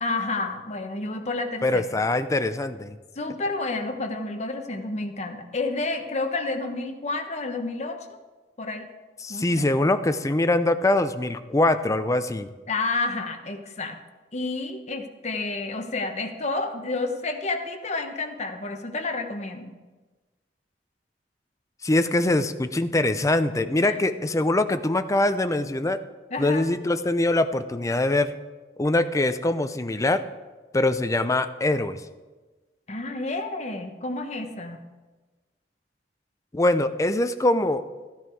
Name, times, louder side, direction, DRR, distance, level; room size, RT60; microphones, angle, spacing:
voice 1, 0.0-1.9 3.2-8.1 8.6-8.9 9.3-9.5 12.7-14.0 14.3-19.7 23.8-24.0 26.3-26.7 32.9-34.8, left 3 dB, 40° left, 5 dB, 1.1 m, -30 dB
voice 2, 1.6-3.0 9.2-12.5 21.8-26.0 26.4-28.3 28.8-30.2 30.7-32.0 36.5-37.8, left 2 dB, 20° left, 10 dB, 0.5 m, -23 dB
14.0 x 10.5 x 4.7 m, 1.3 s
head